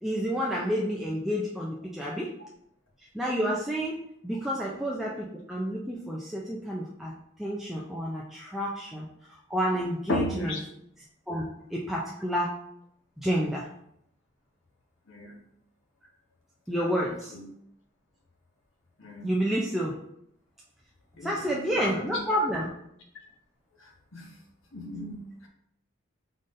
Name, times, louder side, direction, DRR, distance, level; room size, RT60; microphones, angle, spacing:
voice 1, 0.0-2.3 3.1-7.1 7.4-9.1 9.5-10.6 11.3-11.4 11.7-12.5 13.2-13.7 16.7-17.3 19.2-20.0 21.2-22.7, equal, ahead, -4 dB, 0.4 m, -29 dB
voice 2, 10.1-10.6 15.1-15.3 16.8-17.4 19.0-19.3 21.2-22.2 23.8-24.3 24.7-25.5, left 2 dB, 70° left, 0 dB, 1.0 m, -35 dB
5.3 x 3.8 x 2.5 m, 0.74 s
head